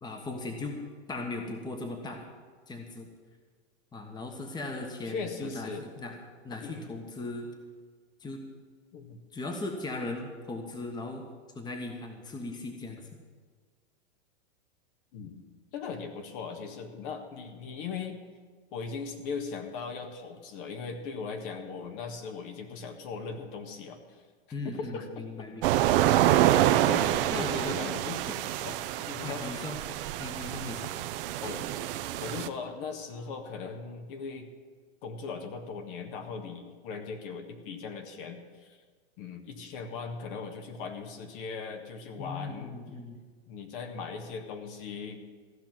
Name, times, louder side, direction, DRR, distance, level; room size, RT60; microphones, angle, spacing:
voice 1, 0.0-0.8 1.1-2.3 2.7-3.1 3.9-6.1 6.4-7.5 8.2-8.4 9.3-11.2 11.5-13.1 24.5-25.8 26.9-27.8 28.3-28.5 29.2-29.8 30.2-30.9 42.2-43.2, left 2 dB, 10° left, 3 dB, 1.4 m, -38 dB
voice 2, 5.0-5.9 6.6-6.8 8.9-9.2 15.1-15.4 15.7-18.2 18.7-24.0 24.6-25.2 26.7-28.2 28.6-29.4 31.4-31.6 32.2-34.5 35.0-38.8 39.2-42.8 43.5-45.2, left 5 dB, 50° left, 5 dB, 1.6 m, -39 dB
sound 1, 25.6-32.5, right 13 dB, 55° right, 0.8 m, -27 dB
15.0 x 5.9 x 9.4 m, 1.5 s
hypercardioid pair, 125°, 34 cm